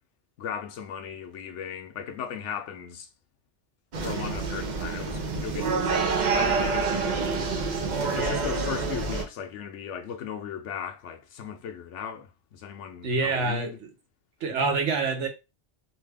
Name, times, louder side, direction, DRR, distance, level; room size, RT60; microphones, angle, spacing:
voice 1, 0.4-3.1 3.9-7.2 8.1-13.8, left 8 dB, 90° left, 0.9 m, -37 dB
sound 1, 3.9-9.2, right 4 dB, 50° right, 0.6 m, -27 dB
voice 2, 13.0-13.7 14.4-15.3, right 3 dB, 85° right, 1.1 m, -26 dB
2.9 x 2.2 x 3.3 m
omnidirectional pair, 1.2 m